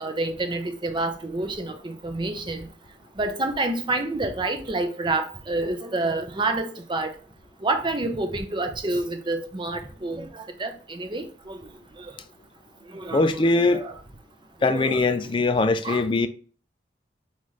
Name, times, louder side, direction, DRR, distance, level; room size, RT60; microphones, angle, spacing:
voice 1, 0.0-2.7 3.2-7.1 7.6-11.6 12.0-12.1 12.9-14.0 14.6-15.3 15.8-16.0, right 2 dB, 25° right, 0.6 m, -28 dB
voice 2, 13.1-13.8 14.6-16.3, left 3 dB, 25° left, 0.4 m, -21 dB
5.6 x 2.4 x 3.1 m
head